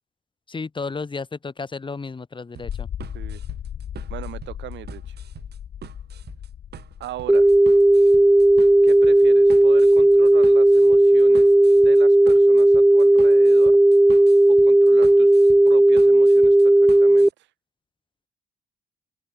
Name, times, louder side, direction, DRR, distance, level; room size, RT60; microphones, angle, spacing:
voice 1, 0.5-2.9, left 4 dB, 25° left, 2.5 m, -33 dB
sound 1, 2.5-17.3, right 10 dB, 65° right, 2.4 m, -43 dB
sound 2, 2.6-12.7, left 9 dB, 50° left, 0.9 m, -38 dB
voice 2, 4.1-5.2 7.0-7.5 8.8-11.5 11.8-13.8 14.5-15.3 15.6-17.3, right 14 dB, 90° right, 2.3 m, -38 dB
sound 3, 7.3-17.3, right 1 dB, 5° right, 0.3 m, -14 dB
open air
cardioid pair, 100°, 18 cm